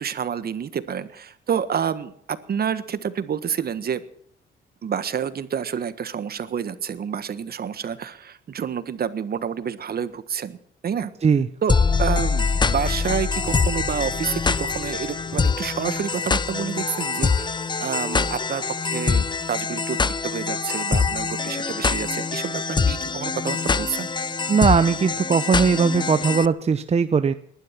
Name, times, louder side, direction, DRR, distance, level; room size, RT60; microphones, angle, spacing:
voice 1, 0.0-4.0 4.8-10.6 10.8-11.1 11.6-24.1, right 7 dB, 50° right, 13 dB, 1.5 m, -29 dB
sound 1, 11.7-26.5, left 4 dB, 20° left, 0.7 m, -24 dB
voice 2, 24.5-27.3, right 5 dB, 30° right, 11 dB, 0.8 m, -19 dB
20.0 x 11.5 x 5.9 m, 0.69 s
cardioid pair, 90°, 20 cm